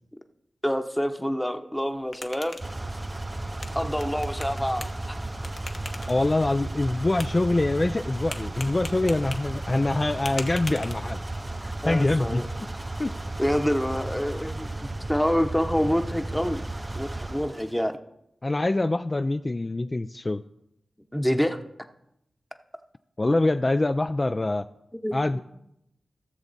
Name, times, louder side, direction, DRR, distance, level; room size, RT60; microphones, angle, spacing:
voice 1, 0.6-2.6 3.7-5.2 11.8-12.5 13.4-16.6 16.9-17.9 21.1-21.6 25.0-25.4, equal, 5° left, 7 dB, 0.9 m, -27 dB
sound 1, 1.8-11.4, left 3 dB, 55° left, 1.1 m, -43 dB
sound 2, 2.6-17.7, right 2 dB, 25° right, 0.5 m, -34 dB
voice 2, 6.1-11.2 11.8-12.4 13.0-13.1 18.4-20.4 23.2-24.7 25.1-25.4, left 2 dB, 30° left, 10 dB, 0.3 m, -24 dB
16.0 x 7.1 x 4.0 m, 0.81 s
wide cardioid pair, 75°, 0 cm